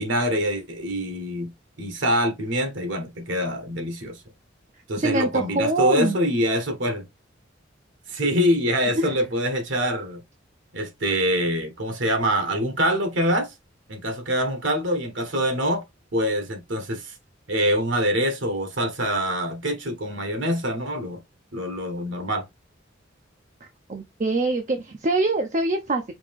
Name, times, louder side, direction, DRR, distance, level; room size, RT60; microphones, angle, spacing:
voice 1, 0.0-1.5 1.8-4.2 4.9-7.0 8.1-10.2 10.7-13.5 13.9-15.8 16.1-17.1 17.5-21.2 21.5-22.4, equal, 70° right, 1.2 m, -25 dB
voice 2, 5.0-6.2 9.0-9.1 23.9-26.1, right 2 dB, 40° right, 0.5 m, -24 dB
5.1 x 2.8 x 3.5 m
head